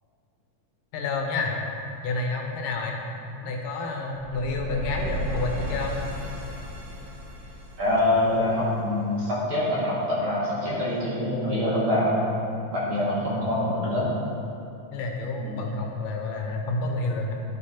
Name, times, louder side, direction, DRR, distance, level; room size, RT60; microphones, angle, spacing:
voice 1, 0.9-1.5 2.0-3.0 3.3-6.0 14.9-17.3, left 3 dB, 85° left, 1 dB, 2.5 m, -29 dB
sound 1, 4.1-9.1, right 1 dB, 65° right, 2.0 m, -34 dB
voice 2, 7.8-12.3 12.7-14.1 15.4-15.6, left 1 dB, 45° right, -7 dB, 2.0 m, -25 dB
11.0 x 5.2 x 4.2 m, 2.6 s
omnidirectional pair, 3.7 m